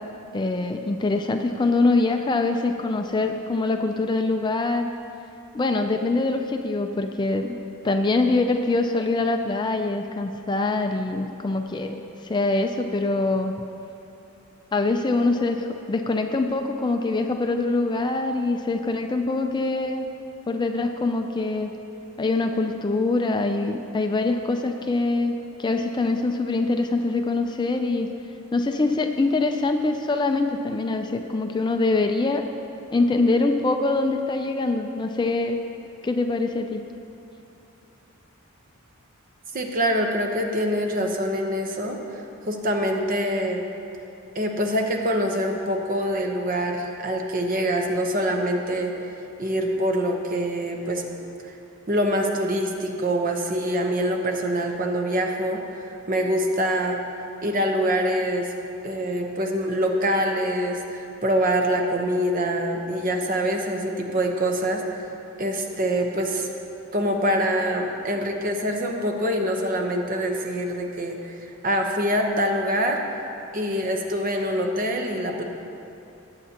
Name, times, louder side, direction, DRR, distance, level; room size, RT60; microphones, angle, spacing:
voice 1, 0.3-4.9 5.5-7.6 7.8-13.5 14.7-20.0 20.5-21.7 22.2-28.1 28.5-32.4 32.9-35.6 36.0-36.8, left 3 dB, 20° left, 5 dB, 0.3 m, -24 dB
voice 2, 39.5-43.6 44.3-48.9 49.4-51.0 51.5-51.6 51.9-57.0 57.4-58.5 58.8-64.8 65.4-66.5 66.9-73.0 73.5-75.4, equal, 40° right, 2 dB, 0.9 m, -25 dB
19.0 x 8.1 x 2.9 m, 2.8 s
head